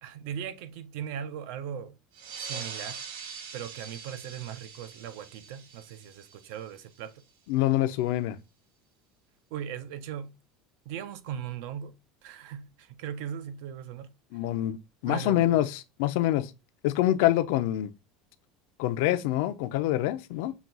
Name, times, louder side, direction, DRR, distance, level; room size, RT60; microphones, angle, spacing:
voice 1, 0.0-2.0 2.4-3.0 3.5-7.1 9.5-10.4 10.9-11.9 12.2-14.1 15.1-15.7, right 9 dB, 60° right, 0.6 m, -38 dB
sound 1, 2.1-7.2, right 6 dB, 90° right, 1.2 m, -43 dB
voice 2, 7.5-8.4 14.3-14.8 15.0-16.5 16.8-17.9 18.8-20.5, left 14 dB, 60° left, 0.5 m, -26 dB
5.9 x 2.3 x 3.9 m
cardioid pair, 175°, 0 cm